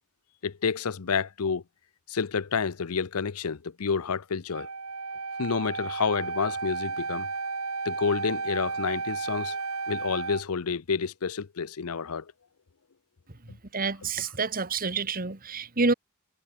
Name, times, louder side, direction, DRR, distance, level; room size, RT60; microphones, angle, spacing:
voice 1, 0.4-1.6 2.1-4.7 5.4-7.3 7.8-9.6 9.9-12.3 13.5-13.6, left 5 dB, 80° left, 0.7 m, -29 dB
Wind instrument woodwind instrument, 4.5-10.4, right 4 dB, 70° right, 3.2 m, -33 dB
voice 2, 13.7-15.9, right 4 dB, 40° right, 1.9 m, -28 dB
head